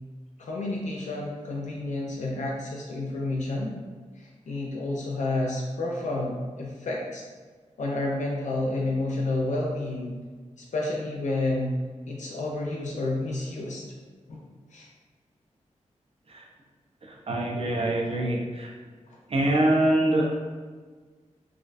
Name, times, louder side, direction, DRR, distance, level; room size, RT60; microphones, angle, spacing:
voice 1, 0.4-3.7 4.2-7.2 7.8-10.1 10.6-11.8 12.1-13.8 14.3-14.4 14.7-14.9, left 2 dB, 70° left, -2 dB, 0.4 m, -30 dB
voice 2, 17.0-18.7 19.3-20.5, right 1 dB, 50° right, -1 dB, 0.5 m, -24 dB
2.4 x 2.1 x 2.5 m, 1.5 s
cardioid pair, 55°, 13 cm